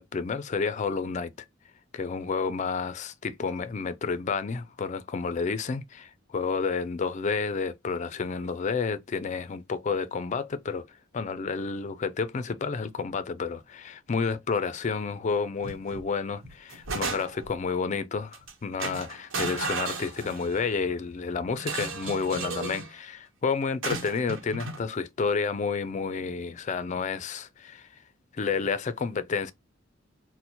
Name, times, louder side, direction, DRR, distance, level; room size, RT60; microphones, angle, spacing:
voice 1, 0.0-1.5 1.9-27.9 28.3-29.5, left 5 dB, 35° left, 0.4 m, -30 dB
sound 1, 15.6-16.0 16.4-17.6 18.3-18.5 18.8-20.6 21.6-22.9 23.8-24.8, right 3 dB, 90° right, 0.9 m, -34 dB
4.2 x 2.1 x 2.8 m
head